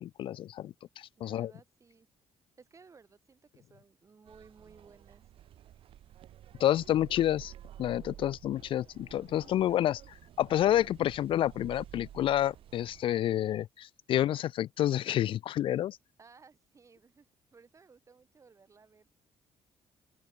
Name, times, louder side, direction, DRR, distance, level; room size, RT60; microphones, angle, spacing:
voice 1, 0.0-1.5 6.6-7.5 7.8-10.0 10.4-16.0, left 12 dB, 60° left, 0.4 m, -29 dB
voice 2, 1.2-2.1 2.6-5.2 16.2-19.1, right 5 dB, 30° right, 6.1 m, -58 dB
sound 1, 4.3-13.0, right 11 dB, 65° right, 1.2 m, -51 dB
open air
cardioid pair, 110°, 10 cm